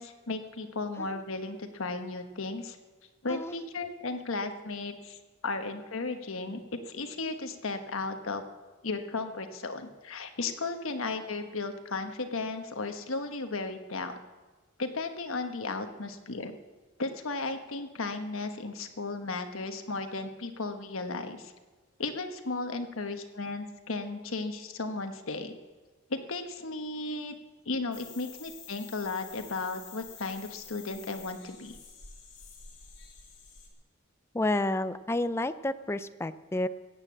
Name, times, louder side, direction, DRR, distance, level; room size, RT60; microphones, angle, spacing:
voice 1, 0.0-2.8 3.2-8.4 8.8-14.2 14.8-16.6 17.0-21.5 22.0-25.5 26.1-27.3 27.6-31.8, left 3 dB, 80° left, 7 dB, 1.3 m, -35 dB
voice 2, 3.3-3.6 34.3-36.7, left 1 dB, 10° left, 12 dB, 0.4 m, -30 dB
sound 1, 27.9-33.7, left 6 dB, 60° left, 3.0 m, -49 dB
16.5 x 9.0 x 7.4 m, 1.3 s
head